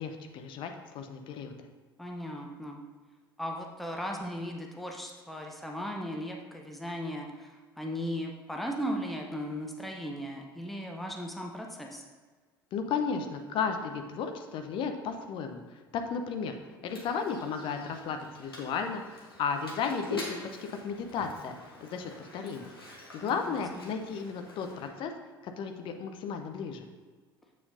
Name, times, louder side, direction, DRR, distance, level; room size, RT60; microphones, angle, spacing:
voice 1, 0.0-1.5 12.7-16.6 16.8-21.5 21.8-22.7 23.1-25.1 25.4-26.9, left 6 dB, 45° left, 5 dB, 0.7 m, -34 dB
voice 2, 2.0-2.8 3.4-12.0 23.2-23.9, equal, ahead, 1 dB, 0.8 m, -37 dB
Mechanisms, 16.8-24.9, left 2 dB, 85° left, 1.1 m, -46 dB
7.2 x 7.0 x 2.6 m, 1.4 s
figure-of-eight pair, 65°, 12 cm